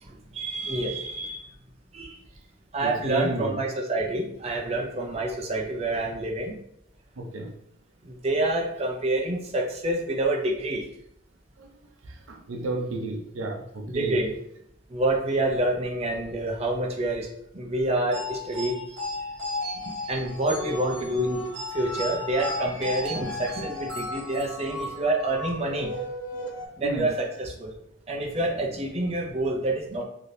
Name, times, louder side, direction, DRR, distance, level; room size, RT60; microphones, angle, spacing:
voice 1, 0.0-1.5 1.9-2.2 2.7-6.5 8.0-10.9 13.9-14.3 14.9-17.3 17.5-18.8 20.1-21.4 21.7-26.0 26.8-27.7 28.1-30.0, right 2 dB, 30° right, 0 dB, 0.5 m, -27 dB
voice 2, 2.8-3.6 7.2-7.5 11.6-11.7 12.0-14.2 26.8-27.1, right 2 dB, 80° right, 2 dB, 0.6 m, -32 dB
sound 1, 18.1-25.0, left 2 dB, 55° right, 1.1 m, -35 dB
sound 2, 20.1-26.7, left 1 dB, 60° left, 0.6 m, -37 dB
3.3 x 2.8 x 2.6 m, 0.73 s
head